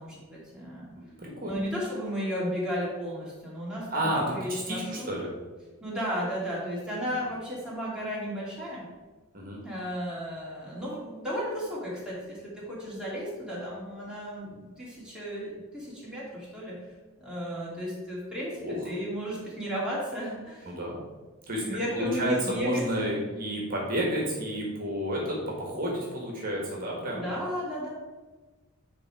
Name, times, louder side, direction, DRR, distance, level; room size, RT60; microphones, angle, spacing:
voice 1, 0.0-0.9 1.4-5.1 5.8-8.9 9.6-16.8 17.2-20.7 21.6-23.1 27.1-27.9, equal, 5° right, -7 dB, 2.5 m, -34 dB
voice 2, 1.0-1.7 3.9-5.3 7.1-7.2 9.3-9.6 18.6-18.9 20.6-21.0 21.5-21.6 21.9-27.3, equal, 40° right, -2 dB, 1.6 m, -31 dB
9.9 x 3.6 x 4.7 m, 1.3 s
head